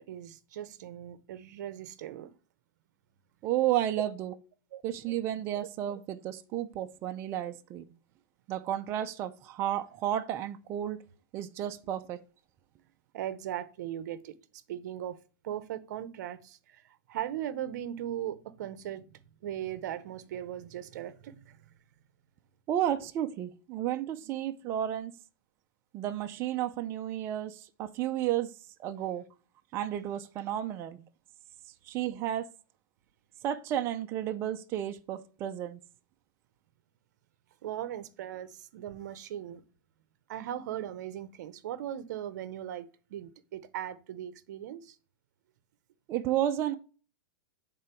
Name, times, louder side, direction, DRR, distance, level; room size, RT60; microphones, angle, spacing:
voice 1, 0.0-2.3 4.7-4.8 13.1-15.2 15.4-21.6 37.6-39.6 40.3-45.0, right 11 dB, 55° right, 0.7 m, -39 dB
voice 2, 3.4-4.3 4.8-7.9 8.5-11.0 11.3-12.2 22.7-25.1 25.9-28.5 28.8-29.2 29.7-31.0 31.9-32.5 33.4-35.8 46.1-46.7, right 11 dB, 25° right, 0.4 m, -32 dB
8.7 x 3.8 x 4.4 m
supercardioid pair, 165°, 11 cm